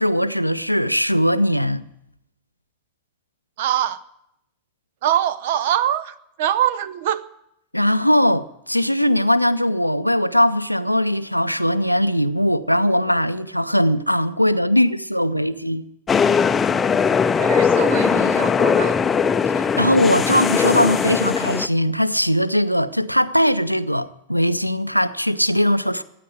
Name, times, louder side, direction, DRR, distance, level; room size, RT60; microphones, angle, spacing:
voice 1, 0.0-1.8 7.7-15.8 19.5-26.0, equal, 90° left, 0.6 m, -20 dB
voice 2, 3.6-4.0 5.0-7.2 17.4-19.0, right 11 dB, 55° right, 0.7 m, -23 dB
sound 1, 16.1-21.7, left 6 dB, 20° left, 0.6 m, -19 dB
15.0 x 9.2 x 8.9 m
figure-of-eight pair, 90°, 0 cm